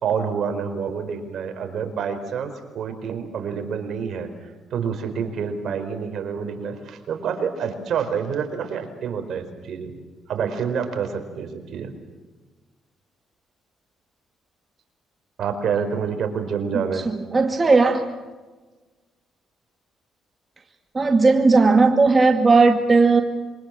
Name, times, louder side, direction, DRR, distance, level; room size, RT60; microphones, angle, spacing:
voice 1, 0.0-9.9 10.3-11.9 15.4-17.1, right 6 dB, 65° right, 6 dB, 4.6 m, -28 dB
voice 2, 17.1-18.0 20.9-23.2, right 3 dB, 30° right, 4 dB, 2.2 m, -16 dB
27.0 x 25.0 x 7.6 m, 1.3 s
cardioid pair, 90°, 0 cm